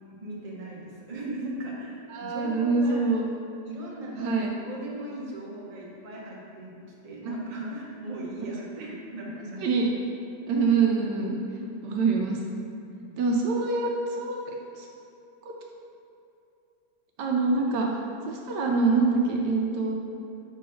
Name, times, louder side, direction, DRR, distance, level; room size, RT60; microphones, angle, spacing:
voice 1, 0.1-3.0 3.6-9.7 12.9-13.1, right 1 dB, 30° right, -5 dB, 0.8 m, -38 dB
voice 2, 2.1-3.2 4.1-4.5 7.3-7.4 9.6-9.9 10.5-11.4 11.8-12.4 13.2-13.9 14.2-14.4 14.7-14.9 17.2-17.9 18.3-19.9, right 4 dB, 75° right, 0 dB, 1.2 m, -25 dB
5.2 x 3.8 x 5.6 m, 2.8 s
omnidirectional pair, 2.0 m